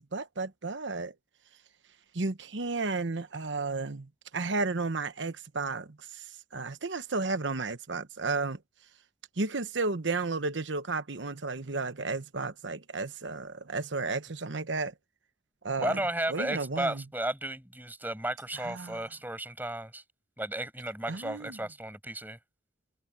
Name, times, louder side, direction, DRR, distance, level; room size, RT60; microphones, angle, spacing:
voice 1, 0.1-1.1 2.1-8.6 9.4-14.9 15.6-16.0 16.3-17.0 18.5-19.0 21.1-21.6, right 3 dB, 75° right, 1.1 m, -33 dB
voice 2, 15.8-20.0 20.4-22.4, right 1 dB, 10° right, 6.4 m, -34 dB
head